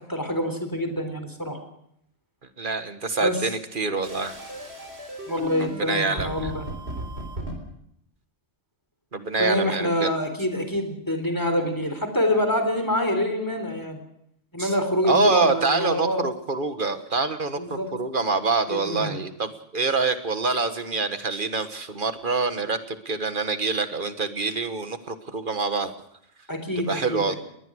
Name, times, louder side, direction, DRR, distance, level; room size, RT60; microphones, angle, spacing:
voice 1, 0.1-1.6 3.2-3.4 5.3-6.6 9.4-14.0 14.5-16.2 17.6-17.9 18.7-19.2 26.5-27.4, left 1 dB, 15° left, 6 dB, 3.7 m, -26 dB
voice 2, 2.6-4.4 5.6-6.5 9.1-10.1 14.6-14.8 15.0-25.9 26.8-27.4, right 4 dB, 45° right, 10 dB, 1.6 m, -26 dB
sound 1, 4.0-7.6, right 2 dB, 60° right, 4.1 m, -36 dB
21.0 x 20.0 x 6.4 m, 0.74 s
omnidirectional pair, 1.2 m